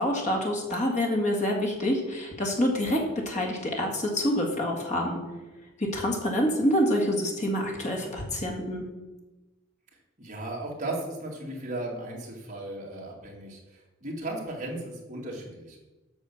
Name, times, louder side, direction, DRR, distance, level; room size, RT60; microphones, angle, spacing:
voice 1, 0.0-5.2 5.8-8.8, equal, 35° left, 0 dB, 1.8 m, -27 dB
voice 2, 10.2-15.8, right 2 dB, 35° right, -3 dB, 2.3 m, -36 dB
8.4 x 5.6 x 7.0 m, 1.1 s
head